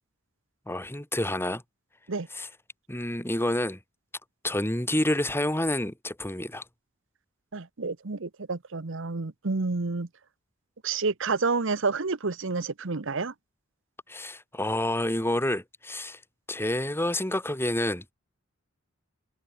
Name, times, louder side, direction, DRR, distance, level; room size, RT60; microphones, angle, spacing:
voice 1, 0.7-1.6 2.3-2.5 2.9-3.8 4.4-6.6 14.1-16.2 16.5-18.0, left 1 dB, 10° left, 3.9 m, -28 dB
voice 2, 7.5-10.1 10.8-13.3, right 4 dB, 65° right, 1.0 m, -29 dB
head